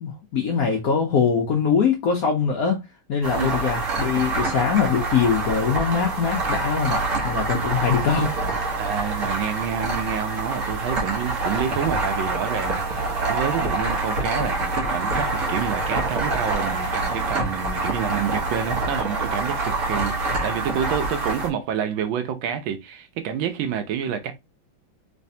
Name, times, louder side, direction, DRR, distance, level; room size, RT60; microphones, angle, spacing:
voice 1, 0.0-2.8 3.1-8.3, left 6 dB, 80° left, 0.8 m, -22 dB
sound 1, 3.2-21.5, right 3 dB, 45° right, 1.1 m, -26 dB
voice 2, 3.3-3.6 8.8-24.3, right 8 dB, 75° right, 1.3 m, -28 dB
3.2 x 3.2 x 2.6 m
omnidirectional pair, 2.3 m